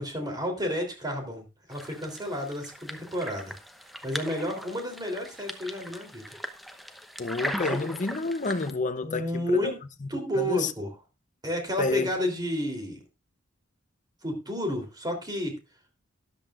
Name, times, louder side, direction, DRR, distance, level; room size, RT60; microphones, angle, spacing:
voice 1, 0.0-3.6 4.0-6.3 9.0-9.8 10.1-10.9 11.4-13.0 14.2-15.6, equal, 20° right, 3.4 m, -31 dB
sound 1, 1.7-8.7, equal, ahead, 0.9 m, -38 dB
voice 2, 7.2-9.7 10.0-10.1 10.4-10.7 11.8-12.1, left 3 dB, 40° left, 0.7 m, -29 dB
13.0 x 11.0 x 2.5 m
head